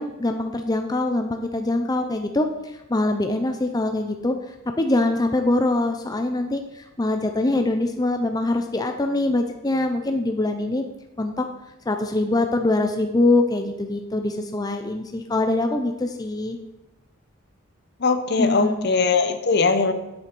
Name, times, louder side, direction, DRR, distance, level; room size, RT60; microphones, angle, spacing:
voice 1, 0.0-4.3 4.8-10.8 11.2-11.4 11.9-16.6 18.4-18.9, left 2 dB, 20° left, 5 dB, 0.5 m, -23 dB
voice 2, 18.0-19.9, left 4 dB, 55° left, 9 dB, 0.8 m, -20 dB
7.9 x 7.0 x 5.3 m, 1.0 s
head